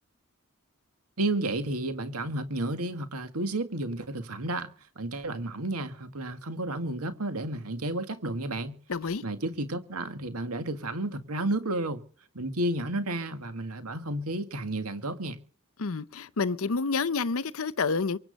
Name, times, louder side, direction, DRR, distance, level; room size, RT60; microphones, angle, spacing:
voice 1, 1.2-8.8 9.2-12.0 12.3-15.4, right 1 dB, 90° right, 2.0 m, -32 dB
voice 2, 8.9-9.2 15.8-18.2, left 4 dB, 70° left, 0.7 m, -29 dB
24.0 x 8.9 x 5.3 m
head